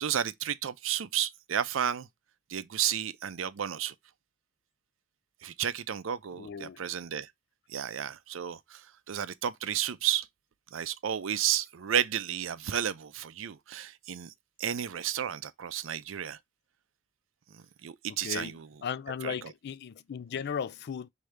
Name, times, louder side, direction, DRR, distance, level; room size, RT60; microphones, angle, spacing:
voice 1, 0.0-2.1 2.5-3.9 5.4-7.3 7.7-10.3 10.7-14.3 14.6-16.4 17.5-18.7 19.2-19.3, right 9 dB, 75° right, 0.5 m, -32 dB
voice 2, 6.4-6.8 18.1-21.1, left 7 dB, 55° left, 0.4 m, -36 dB
4.9 x 2.7 x 3.2 m
head